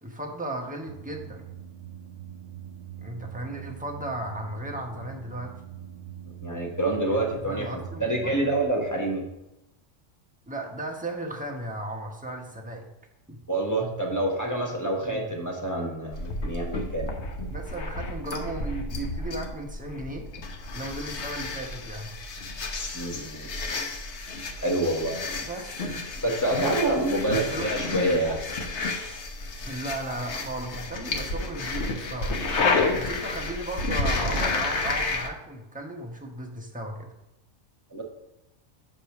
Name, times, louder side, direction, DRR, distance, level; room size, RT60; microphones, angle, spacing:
voice 1, 0.0-1.4 3.0-5.5 7.1-8.5 10.5-12.9 13.3-13.4 15.0-15.3 17.4-20.3 20.7-22.1 25.4-26.0 27.3-27.7 29.6-32.4 33.0-37.1, right 1 dB, 5° right, 0 dB, 1.0 m, -36 dB
sound 1, 0.9-8.7, right 10 dB, 75° right, 1.1 m, -43 dB
voice 2, 6.4-7.7 8.0-9.2 13.5-17.1 22.9-23.5 24.6-25.2 26.2-28.4 37.9-38.0, right 1 dB, 15° left, -1 dB, 1.2 m, -27 dB
sound 2, 16.1-35.3, left 3 dB, 60° left, 1.2 m, -31 dB
6.6 x 5.0 x 5.9 m, 0.91 s
omnidirectional pair, 1.4 m